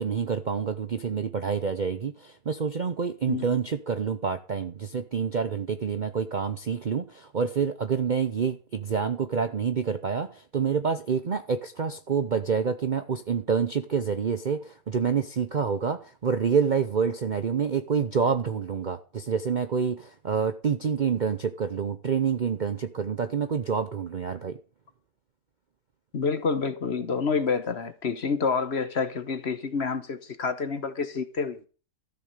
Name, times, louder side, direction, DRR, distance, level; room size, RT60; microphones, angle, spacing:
voice 1, 0.0-24.6, right 6 dB, 45° right, 0.6 m, -27 dB
voice 2, 26.1-31.6, left 5 dB, 50° left, 1.2 m, -28 dB
13.5 x 7.2 x 6.6 m
omnidirectional pair, 1.6 m